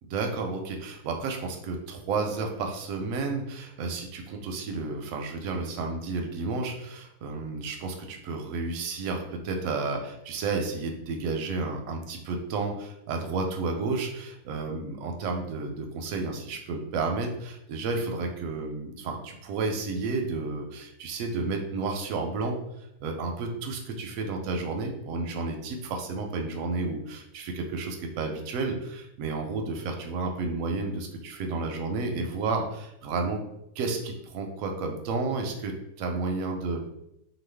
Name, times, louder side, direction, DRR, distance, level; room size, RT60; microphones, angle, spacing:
voice 1, 0.1-22.6 23.0-33.4 33.8-35.7 36.0-36.9, right 3 dB, 70° right, 3 dB, 0.8 m, -31 dB
3.0 x 2.2 x 3.3 m, 0.82 s
omnidirectional pair, 1.7 m